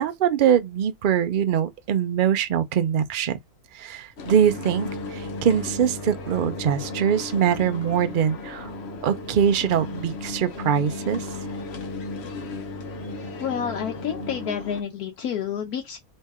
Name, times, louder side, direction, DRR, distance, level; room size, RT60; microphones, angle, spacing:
voice 1, 0.0-3.4 3.7-8.7 9.0-11.3, right 8 dB, 80° right, 0.4 m, -23 dB
sound 1, 4.2-14.8, left 2 dB, 50° left, 1.0 m, -35 dB
voice 2, 13.4-16.0, left 8 dB, 80° left, 1.2 m, -29 dB
3.5 x 3.2 x 4.1 m
omnidirectional pair, 1.6 m